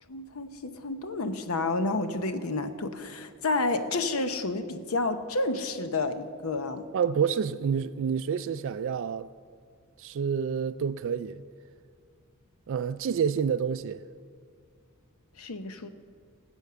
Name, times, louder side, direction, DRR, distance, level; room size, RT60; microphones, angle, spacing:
voice 1, 0.1-6.8 15.4-15.9, left 2 dB, 75° left, 0.8 m, -30 dB
voice 2, 6.9-9.3 10.0-11.4 12.7-14.0, right 7 dB, 60° right, 0.3 m, -28 dB
18.0 x 8.2 x 6.8 m
head